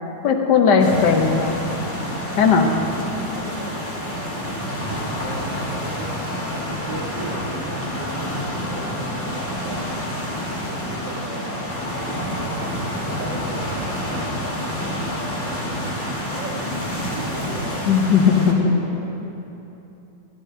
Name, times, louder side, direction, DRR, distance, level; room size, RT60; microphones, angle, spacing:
voice 1, 0.2-1.6 2.4-2.7 17.9-18.7, left 6 dB, 75° left, 4 dB, 1.4 m, -17 dB
sound 1, 0.8-18.5, equal, 10° left, 1.3 m, -28 dB
voice 2, 2.3-2.7 3.3-4.3 4.6-5.6 5.9-6.1 6.8-9.4 9.6-15.6 16.3-18.0 18.4-19.3, right 2 dB, 80° right, -2 dB, 2.1 m, -38 dB
14.5 x 11.0 x 2.7 m, 3.0 s
omnidirectional pair, 1.9 m